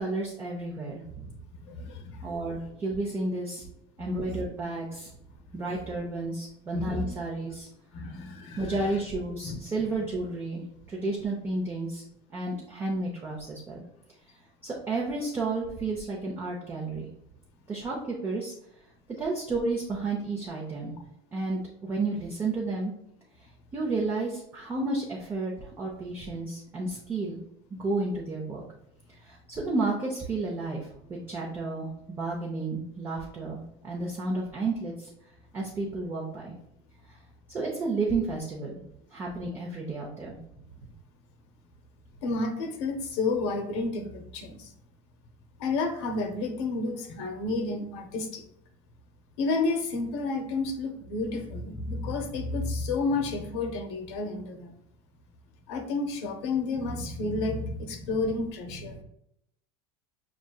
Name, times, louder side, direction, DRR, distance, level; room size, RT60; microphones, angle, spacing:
voice 1, 0.0-1.4 2.2-3.6 4.0-5.1 5.5-7.7 8.6-12.0 12.3-13.8 14.6-17.1 17.7-18.5 19.2-20.9 21.3-22.9 23.7-27.4 27.7-28.6 29.2-30.8 31.1-35.1 35.5-36.5 37.1-37.2 37.5-38.7 39.1-40.4 59.0-59.1, right 3 dB, 15° right, -3 dB, 0.5 m, -32 dB
voice 2, 1.5-2.3 4.0-4.3 5.5-5.7 6.7-7.2 7.9-9.0 9.4-9.6 42.2-44.7 45.6-48.4 49.4-54.7 55.6-59.0, left 3 dB, 75° left, 4 dB, 0.8 m, -31 dB
6.0 x 2.7 x 2.3 m, 0.76 s
cardioid pair, 165°, 14 cm